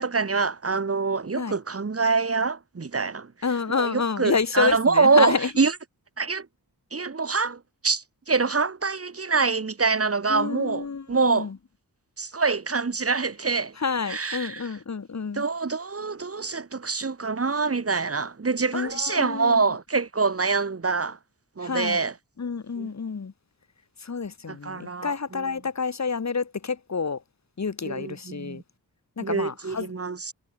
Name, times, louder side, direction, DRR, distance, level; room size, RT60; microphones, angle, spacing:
voice 1, 0.0-3.3 3.8-5.7 6.2-6.5 6.9-11.5 12.2-13.7 14.1-14.7 15.3-21.2 21.6-22.1 22.8-22.9 24.5-25.4 27.9-28.6 29.2-30.3, right 4 dB, 40° right, 3.5 m, -25 dB
voice 2, 3.4-5.5 10.3-11.6 13.8-15.5 18.7-19.6 21.6-22.0 22.4-23.3 24.0-27.2 27.6-28.6 29.2-29.9, left 5 dB, 45° left, 3.4 m, -28 dB
wide cardioid pair, 170°, 37 cm